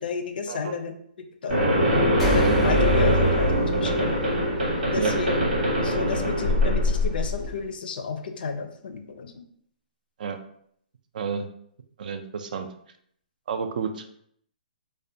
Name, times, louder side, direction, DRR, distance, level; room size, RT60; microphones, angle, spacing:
voice 1, 0.0-0.9 1.4-1.6 2.2-4.1 4.9-5.4 5.8-9.3, left 5 dB, 75° left, 6 dB, 0.4 m, -32 dB
sound 1, 1.5-7.5, equal, 85° right, 1.1 m, -22 dB
sound 2, 2.2-4.8, left 3 dB, 5° left, 0.5 m, -29 dB
voice 2, 11.1-11.5 12.0-12.7 13.5-14.0, right 6 dB, 55° right, 8 dB, 0.3 m, -30 dB
2.3 x 2.1 x 2.7 m, 0.67 s
hypercardioid pair, 160°, 5 cm